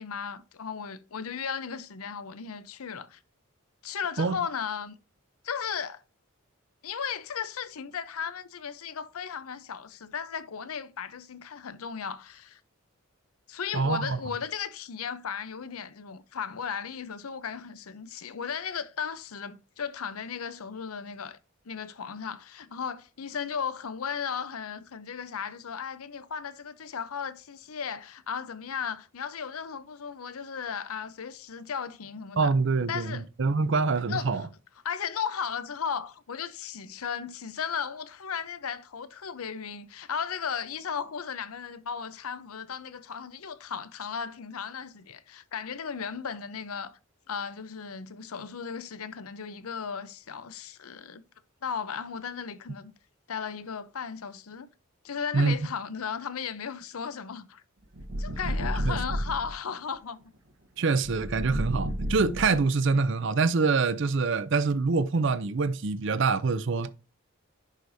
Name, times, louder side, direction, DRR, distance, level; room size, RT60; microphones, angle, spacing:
voice 1, 0.0-3.2 3.8-4.9 5.4-6.0 6.8-12.6 13.5-21.4 21.7-32.5 32.9-33.3 34.1-34.5 34.8-47.0 47.3-51.2 51.6-52.9 53.3-54.7 55.0-57.6 58.2-60.2, left 7 dB, 85° left, 0.7 m, -35 dB
voice 2, 13.7-14.2 32.4-34.4 55.3-55.6 58.8-59.0 60.8-66.9, right 4 dB, 55° right, 0.5 m, -25 dB
sound 1, 57.9-59.5 61.0-62.9, equal, 80° right, 1.1 m, -31 dB
10.5 x 4.9 x 2.7 m
head